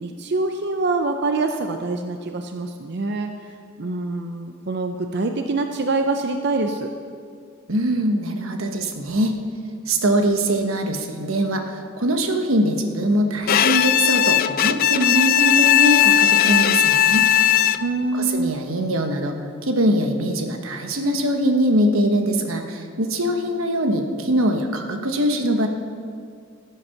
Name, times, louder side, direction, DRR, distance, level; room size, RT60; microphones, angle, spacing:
voice 1, 0.0-3.3 3.8-6.9 17.8-18.6, right 3 dB, 55° right, 5 dB, 0.6 m, -25 dB
voice 2, 7.7-9.4 9.9-17.3 18.1-19.4 19.6-25.7, right 1 dB, 90° right, 5 dB, 1.2 m, -22 dB
Bowed string instrument, 13.5-18.1, left 10 dB, 45° left, 0.3 m, -17 dB
14.5 x 8.2 x 5.8 m, 2.3 s
head